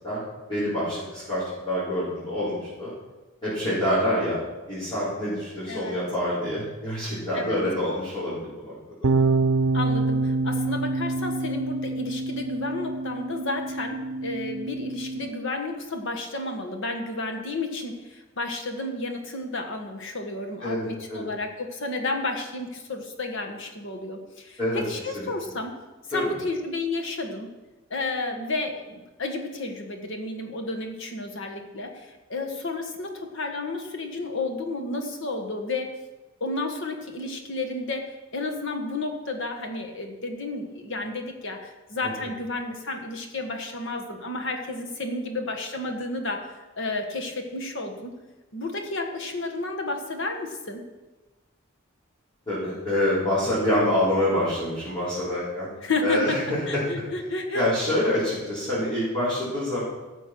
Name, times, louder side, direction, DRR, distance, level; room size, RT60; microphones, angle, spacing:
voice 1, 0.5-2.9 3.4-4.4 4.7-8.7 9.0-9.1 20.6-21.3 24.6-24.8 25.1-25.2 26.1-26.2 42.0-42.1 52.5-55.7 56.0-56.8 57.5-59.8, left 1 dB, 25° left, -13 dB, 4.9 m, -26 dB
sound 1, 9.0-15.3, right 3 dB, 90° right, 0.6 m, -26 dB
voice 2, 9.7-25.7 26.1-27.5 27.9-35.9 36.4-48.1 48.5-50.8 55.8-56.4 56.7-57.7, left 2 dB, 65° left, 4 dB, 1.6 m, -32 dB
13.5 x 7.7 x 6.3 m, 1.1 s
head